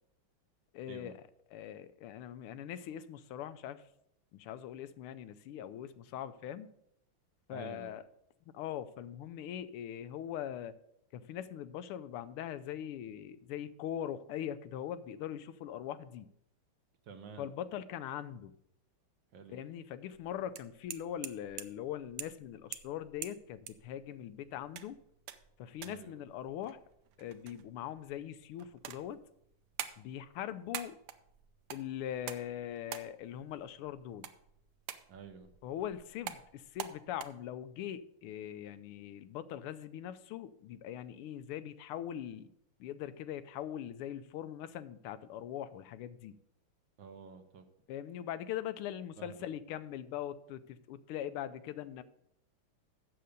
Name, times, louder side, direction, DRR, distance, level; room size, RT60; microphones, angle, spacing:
voice 1, 0.7-1.2 1.5-3.8 4.3-6.7 7.5-8.0 8.5-10.7 11.1-16.3 17.4-18.5 19.5-25.0 25.6-26.8 27.2-29.2 30.0-31.0 31.7-34.3 35.6-42.5 42.8-46.4 47.9-52.0, left 10 dB, 90° left, 13 dB, 1.6 m, -41 dB
voice 2, 7.5-7.9 17.1-17.5 19.3-19.6 25.8-26.2 35.1-35.5 47.0-47.6 49.2-49.3, right 6 dB, 65° right, 7 dB, 1.5 m, -49 dB
sound 1, 20.1-37.3, right 11 dB, 85° right, 1.6 m, -48 dB
8.0 x 6.8 x 6.5 m, 0.74 s
omnidirectional pair, 2.4 m